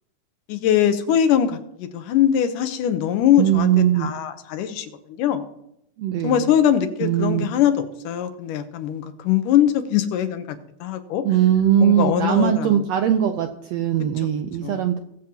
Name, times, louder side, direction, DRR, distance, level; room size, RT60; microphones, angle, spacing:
voice 1, 0.5-3.7 4.0-5.5 6.2-11.2 11.8-12.8 14.6-14.9, left 10 dB, 85° left, 9 dB, 2.5 m, -22 dB
voice 2, 3.4-4.1 6.0-6.5 7.0-7.5 11.2-15.0, right 10 dB, 85° right, 6 dB, 1.5 m, -20 dB
20.5 x 7.7 x 2.9 m, 0.79 s
omnidirectional pair, 3.6 m